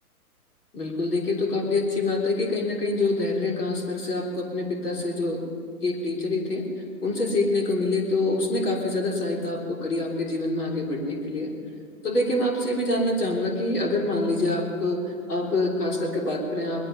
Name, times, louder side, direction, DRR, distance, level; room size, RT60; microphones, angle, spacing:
voice 1, 0.7-5.4 5.8-6.6 7.0-11.5 12.0-15.0 15.3-16.9, left 2 dB, 80° left, 0 dB, 3.4 m, -26 dB
20.0 x 12.5 x 5.5 m, 2.3 s
hypercardioid pair, 135°, 46 cm